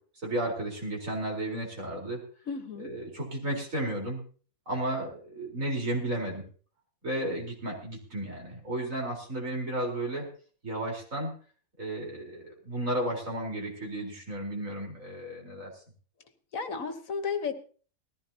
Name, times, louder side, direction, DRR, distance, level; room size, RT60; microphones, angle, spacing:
voice 1, 0.2-2.2 2.8-4.2 4.7-6.4 7.0-10.3 10.6-11.3 11.8-15.7, right 1 dB, 65° right, -1 dB, 4.7 m, -33 dB
voice 2, 2.5-2.9 16.5-17.6, left 5 dB, 70° left, 8 dB, 1.7 m, -33 dB
19.5 x 15.0 x 2.9 m, 0.41 s
omnidirectional pair, 1.5 m